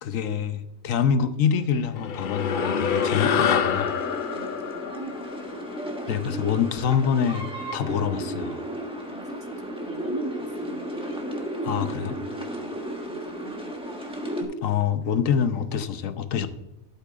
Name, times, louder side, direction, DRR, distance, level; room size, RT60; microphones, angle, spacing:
voice 1, 0.0-3.9 6.1-7.5 7.7-8.6 11.6-12.2 14.4-16.5, left 7 dB, 70° left, 10 dB, 1.1 m, -25 dB
sound 1, 2.0-6.6, left 7 dB, 85° left, 0.4 m, -27 dB
sound 2, 2.4-14.4, equal, 5° right, 1.3 m, -33 dB
voice 2, 4.3-5.4 9.1-11.2 12.2-13.8, right 3 dB, 35° right, 4 dB, 0.5 m, -42 dB
12.0 x 8.3 x 2.5 m, 0.96 s
omnidirectional pair, 1.5 m